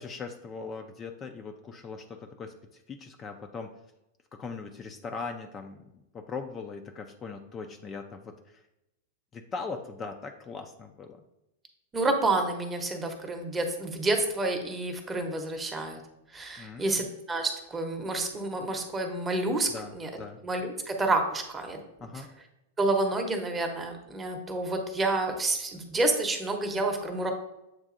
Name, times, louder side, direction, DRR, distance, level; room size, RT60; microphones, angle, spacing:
voice 1, 0.0-2.5 2.9-3.7 4.3-8.2 9.3-11.2 16.6-17.0 19.7-20.4 22.0-22.3, left 4 dB, 25° left, 4 dB, 0.4 m, -40 dB
voice 2, 11.9-16.0 16.3-20.1 20.4-21.8 22.8-27.3, right 2 dB, 15° right, 4 dB, 0.8 m, -29 dB
7.5 x 2.6 x 2.5 m, 0.89 s
hypercardioid pair, 100°, 0 cm